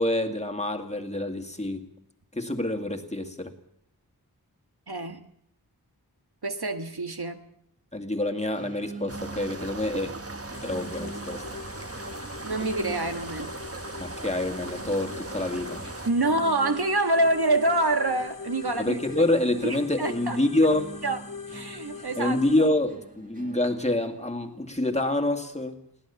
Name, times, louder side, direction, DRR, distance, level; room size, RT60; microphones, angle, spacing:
voice 1, 0.0-1.9 2.3-3.5 7.9-10.2 10.6-11.4 14.0-15.8 18.8-20.9 22.2-25.8, left 1 dB, 15° left, 3 dB, 2.2 m, -27 dB
voice 2, 4.9-5.2 6.4-7.4 12.4-13.5 16.1-19.0 19.6-20.4 20.7-21.2 21.5-22.7, right 2 dB, 75° right, 6 dB, 1.7 m, -26 dB
sound 1, 8.6-24.5, right 2 dB, 20° right, 2.1 m, -46 dB
sound 2, 9.1-16.1, right 2 dB, 35° right, 1.3 m, -38 dB
sound 3, 10.5-22.7, left 5 dB, 55° left, 1.1 m, -43 dB
22.0 x 16.5 x 7.1 m, 0.71 s
wide cardioid pair, 55°, 39 cm